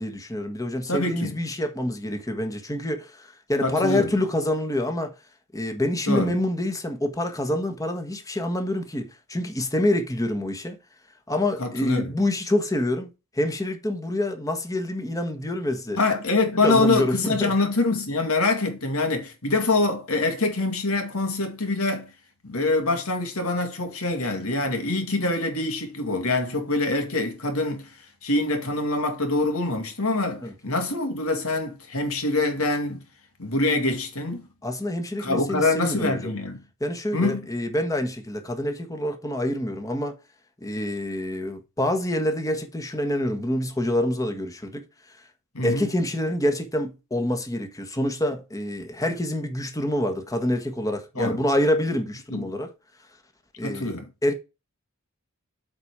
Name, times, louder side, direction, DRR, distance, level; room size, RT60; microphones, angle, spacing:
voice 1, 0.0-5.1 5.5-10.8 11.3-13.1 13.3-16.0 16.6-17.5 30.4-30.5 34.6-36.3 36.8-40.2 40.6-44.8 45.6-52.7 53.6-53.9 54.2-54.3, left 1 dB, 15° left, 1.4 m, -26 dB
voice 2, 0.9-1.4 3.6-4.1 6.1-6.4 11.6-12.1 16.0-22.1 22.4-33.0 33.4-34.5 35.2-36.6 37.1-37.5 45.5-45.9 51.2-51.4 52.3-52.5 53.6-54.1, left 2 dB, 85° left, 2.3 m, -25 dB
8.0 x 4.2 x 5.0 m
head